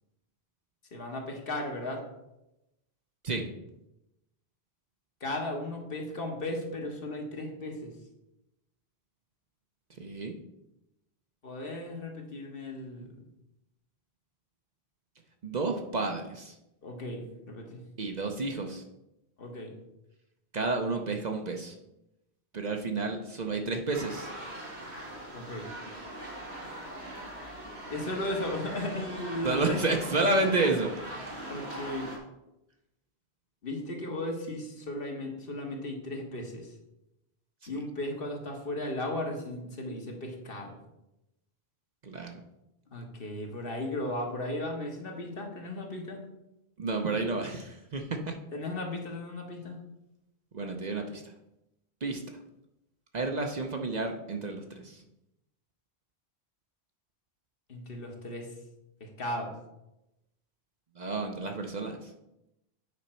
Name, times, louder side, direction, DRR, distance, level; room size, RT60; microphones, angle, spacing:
voice 1, 0.9-2.1 5.2-7.9 11.4-13.3 16.8-17.8 19.4-19.7 25.3-25.7 27.9-30.0 31.5-32.1 33.6-36.7 37.7-40.8 42.9-46.2 48.5-49.8 57.7-58.5 59.0-59.5, left 1 dB, 60° left, 1 dB, 1.5 m, -36 dB
voice 2, 10.0-10.3 15.4-16.6 18.0-18.8 20.5-21.8 22.5-24.3 29.4-31.3 37.6-37.7 42.0-42.3 46.8-48.3 50.5-51.2 52.0-52.2 53.1-55.0 61.0-62.1, right 3 dB, 45° right, 3 dB, 0.8 m, -31 dB
sound 1, 23.9-32.2, right 1 dB, 90° right, 2.0 m, -41 dB
8.4 x 5.1 x 4.3 m, 0.91 s
omnidirectional pair, 1.1 m